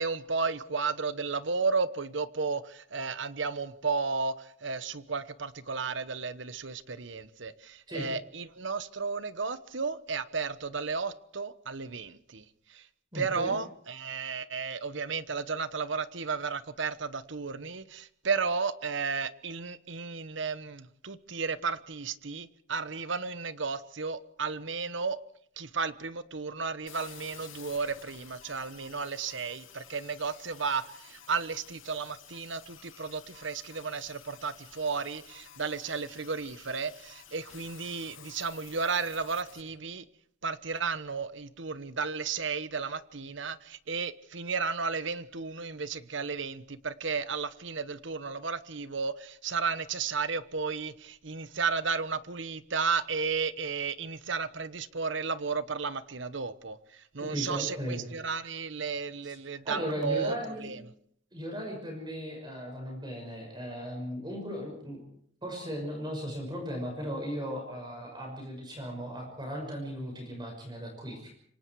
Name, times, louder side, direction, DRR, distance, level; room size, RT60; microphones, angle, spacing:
voice 1, 0.0-12.4 12.7-12.8 13.1-25.2 25.6-40.0 40.4-60.8, right 5 dB, 65° right, 14 dB, 1.1 m, -33 dB
voice 2, 13.1-13.5 57.2-58.0 59.2-59.3 59.6-60.7 61.3-65.0 65.4-71.3, equal, 20° right, 1 dB, 6.0 m, -37 dB
sound 1, 26.9-39.6, left 9 dB, 90° left, 7.7 m, -52 dB
27.0 x 24.5 x 4.7 m, 0.64 s
head